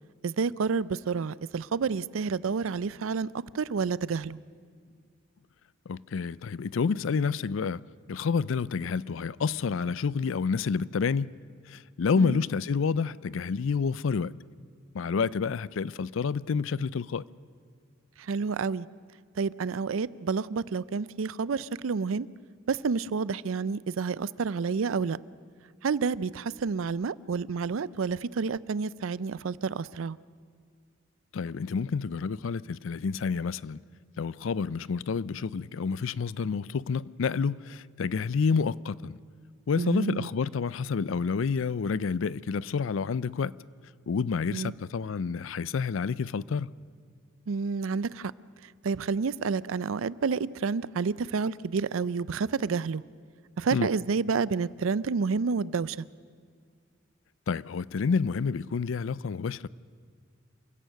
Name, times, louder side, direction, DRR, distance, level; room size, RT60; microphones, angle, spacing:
voice 1, 0.2-3.3 3.5-4.4 12.2-12.4 18.2-18.9 19.4-22.3 22.7-25.2 25.8-30.2 39.8-40.3 44.5-44.7 47.5-48.3 48.6-53.0 53.6-56.0, right 5 dB, 85° right, 0.5 m, -29 dB
voice 2, 5.9-7.8 8.1-11.3 11.7-14.3 14.9-17.2 31.3-33.8 34.2-39.2 39.7-43.5 44.1-46.7 53.7-53.9 57.5-59.7, left 5 dB, 75° left, 0.4 m, -29 dB
27.5 x 16.0 x 6.5 m
head